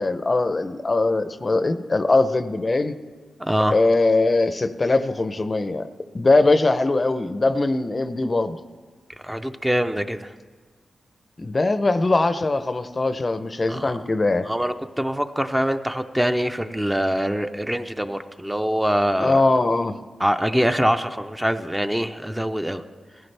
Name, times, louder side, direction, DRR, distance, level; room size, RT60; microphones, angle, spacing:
voice 1, 0.0-3.0 3.7-5.9 6.1-8.6 11.4-14.5 19.2-20.0, left 2 dB, 35° left, 11 dB, 0.6 m, -21 dB
voice 2, 3.4-3.8 9.2-10.3 13.7-14.0 14.5-19.4 20.2-22.8, equal, 5° right, 7 dB, 0.5 m, -24 dB
17.0 x 15.5 x 3.3 m, 1.5 s
cardioid pair, 85°, 0 cm